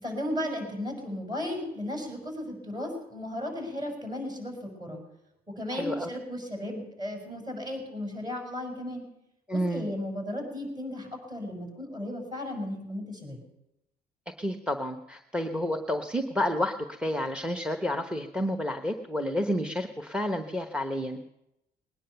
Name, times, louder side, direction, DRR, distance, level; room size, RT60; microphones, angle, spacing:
voice 1, 0.0-5.0 5.5-9.0 9.5-13.4, left 1 dB, 25° right, 3 dB, 6.0 m, -35 dB
voice 2, 5.7-6.1 9.5-9.9 14.4-21.2, equal, 5° right, 6 dB, 0.9 m, -30 dB
20.5 x 10.0 x 6.9 m, 0.88 s
cardioid pair, 110°, 17 cm